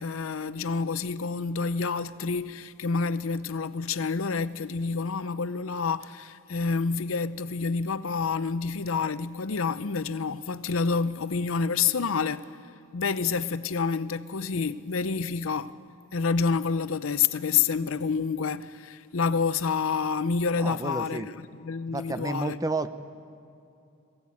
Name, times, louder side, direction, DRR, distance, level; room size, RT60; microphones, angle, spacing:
voice 1, 0.0-12.5 12.9-15.7 16.1-22.6, left 5 dB, 70° left, 0.6 m, -28 dB
voice 2, 20.6-21.3 21.9-22.9, right 3 dB, 15° right, 0.6 m, -31 dB
22.0 x 16.5 x 8.5 m
head